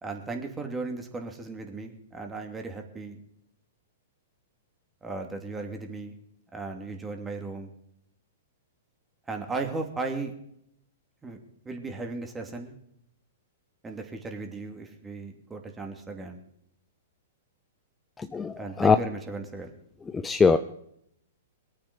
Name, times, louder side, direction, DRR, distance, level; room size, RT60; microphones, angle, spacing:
voice 1, 0.0-3.2 5.0-6.2 6.5-7.7 9.3-10.3 11.2-11.4 11.6-12.8 13.8-16.4 18.6-19.7, right 3 dB, 15° right, 4 dB, 2.6 m, -36 dB
voice 2, 18.2-19.0 20.1-20.6, left 5 dB, 15° left, 9 dB, 0.7 m, -22 dB
22.0 x 8.7 x 5.3 m, 0.73 s
hypercardioid pair, 115°, 0 cm